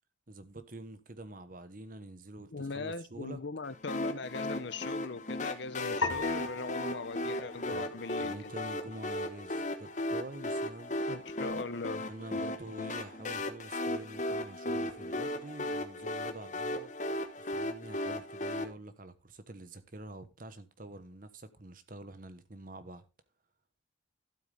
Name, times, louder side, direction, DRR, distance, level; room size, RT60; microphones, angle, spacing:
voice 1, 0.3-3.4 7.7-10.9 12.0-16.9 17.4-23.0, right 2 dB, 45° right, 1.2 m, -47 dB
voice 2, 2.5-8.3 11.1-12.0, left 3 dB, 65° left, 0.8 m, -40 dB
sound 1, 3.9-18.6, left 1 dB, 40° left, 1.1 m, -36 dB
sound 2, 6.0-8.5, left 4 dB, 85° left, 1.4 m, -38 dB
12.5 x 8.1 x 3.5 m
head